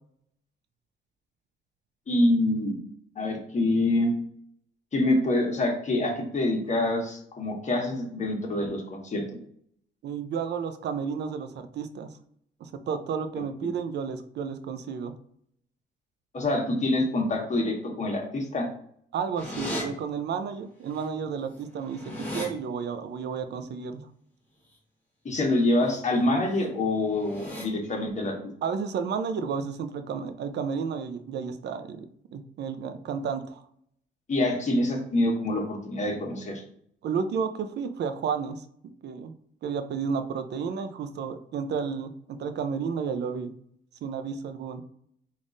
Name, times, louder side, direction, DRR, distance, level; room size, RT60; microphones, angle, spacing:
voice 1, 2.1-2.8 3.2-4.1 4.9-9.2 16.3-18.7 25.2-28.4 34.3-36.6, left 1 dB, 35° left, 1 dB, 1.1 m, -26 dB
voice 2, 10.0-12.1 12.6-15.1 19.1-24.1 28.6-32.1 32.3-33.6 37.0-38.6 39.0-39.3 39.6-43.5 44.0-44.8, right 6 dB, 60° right, 9 dB, 0.5 m, -32 dB
sound 1, 19.4-19.8 21.0-21.1 21.4-22.5 25.6-26.0 26.4-26.7 27.1-27.6, equal, 10° left, 1.4 m, -36 dB
3.5 x 2.5 x 3.9 m, 0.67 s
cardioid pair, 90°, 20 cm